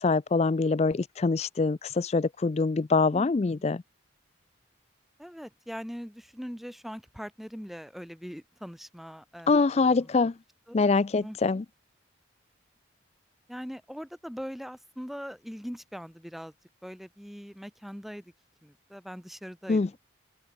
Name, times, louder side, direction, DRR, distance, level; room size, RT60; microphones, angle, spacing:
voice 1, 0.0-3.8 9.5-10.3 10.7-11.6 19.7-20.0, left 4 dB, 30° left, 0.4 m, -24 dB
voice 2, 3.1-3.7 5.2-10.3 10.7-11.4 13.5-16.5 16.8-18.3 18.6-20.0, equal, ahead, 4.6 m, -42 dB
head